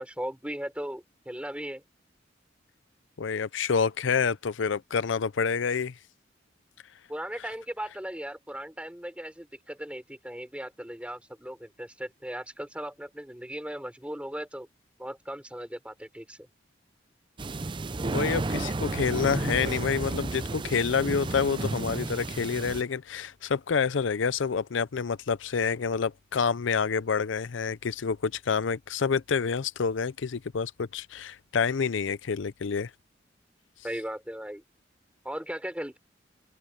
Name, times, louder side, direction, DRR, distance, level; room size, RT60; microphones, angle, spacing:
voice 1, 0.0-1.8 7.1-14.7 15.0-16.4 33.8-34.6 35.2-36.0, equal, 5° right, 3.4 m, -37 dB
voice 2, 3.2-5.9 18.1-32.9, left 5 dB, 85° left, 0.5 m, -28 dB
sound 1, 17.4-22.8, right 2 dB, 25° right, 0.5 m, -32 dB
head